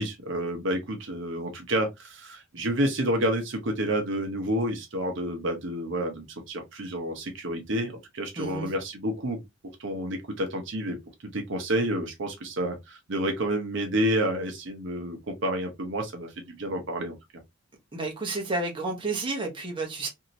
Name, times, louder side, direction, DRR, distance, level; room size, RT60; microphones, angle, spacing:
voice 1, 0.0-9.4 9.8-11.0 11.3-17.1, right 1 dB, 60° right, 0.8 m, -29 dB
voice 2, 8.4-8.7 17.9-20.1, right 3 dB, 25° right, 0.9 m, -31 dB
2.9 x 2.8 x 2.6 m
head